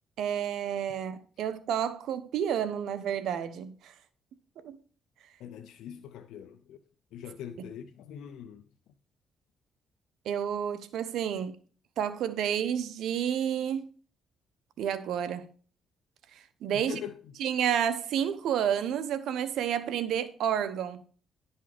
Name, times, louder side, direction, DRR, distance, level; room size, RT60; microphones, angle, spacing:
voice 1, 0.2-3.9 4.6-4.8 10.2-11.5 12.0-13.8 14.8-15.5 16.6-17.0 17.4-21.0, right 9 dB, 75° right, 0.9 m, -30 dB
voice 2, 5.4-6.8 7.1-8.6 16.7-17.2, left 9 dB, 85° left, 0.6 m, -42 dB
11.0 x 5.6 x 5.1 m
cardioid pair, 90°, 0 cm